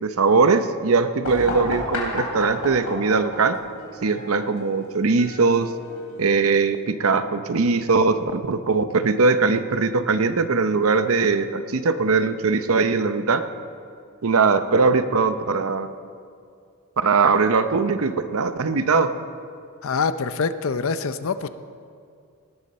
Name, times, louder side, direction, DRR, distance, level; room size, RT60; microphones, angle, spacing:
voice 1, 0.0-3.6 4.0-5.7 6.2-13.4 14.2-15.9 17.0-19.1, right 4 dB, 70° right, 10 dB, 0.7 m, -20 dB
sound 1, 1.2-6.8, left 2 dB, 90° left, 3.8 m, -33 dB
voice 2, 19.8-21.5, left 5 dB, 65° left, 12 dB, 0.6 m, -25 dB
18.5 x 12.0 x 4.2 m, 2.3 s
head